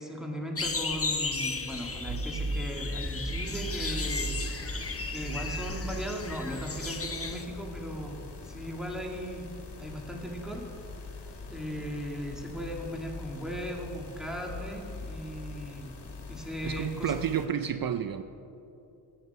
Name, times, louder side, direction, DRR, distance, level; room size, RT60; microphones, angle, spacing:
voice 1, 0.0-4.4 5.1-9.5 9.8-10.7 11.5-15.9 16.3-17.1, equal, ahead, 0 dB, 2.1 m, -37 dB
sound 1, 0.6-7.4, left 4 dB, 35° left, 1.1 m, -35 dB
sound 2, 2.1-7.2, right 2 dB, 30° right, 0.9 m, -37 dB
sound 3, 3.6-17.5, left 3 dB, 85° left, 1.6 m, -44 dB
voice 2, 16.6-18.2, right 8 dB, 60° right, 10 dB, 0.5 m, -30 dB
14.5 x 8.9 x 5.5 m, 2.8 s
cardioid pair, 65°, 40 cm